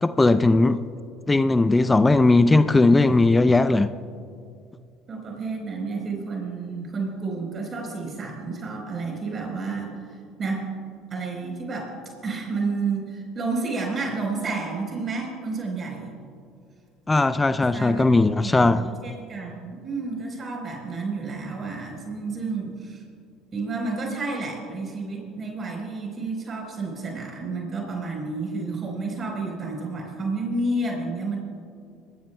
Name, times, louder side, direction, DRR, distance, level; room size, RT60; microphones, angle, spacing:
voice 1, 0.0-0.8 1.3-3.9 17.1-18.8, left 2 dB, 15° left, 11 dB, 0.5 m, -18 dB
voice 2, 5.1-10.7 11.1-11.9 12.2-16.1 17.7-23.0 23.5-31.4, right 3 dB, 40° right, 1 dB, 3.9 m, -30 dB
24.0 x 14.5 x 2.2 m, 2.4 s
hypercardioid pair, 70°, 0 cm